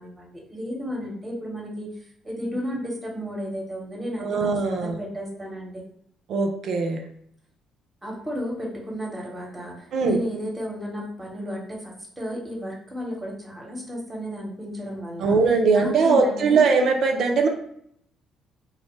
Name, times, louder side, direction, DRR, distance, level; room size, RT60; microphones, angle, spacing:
voice 1, 0.0-1.9 2.2-5.7 8.0-15.4 15.7-16.7, equal, 20° right, -1 dB, 0.9 m, -33 dB
voice 2, 4.2-5.0 6.3-7.0 9.9-10.2 15.2-17.5, right 4 dB, 50° right, 3 dB, 0.4 m, -20 dB
2.7 x 2.0 x 3.1 m, 0.68 s
figure-of-eight pair, 45°, 0 cm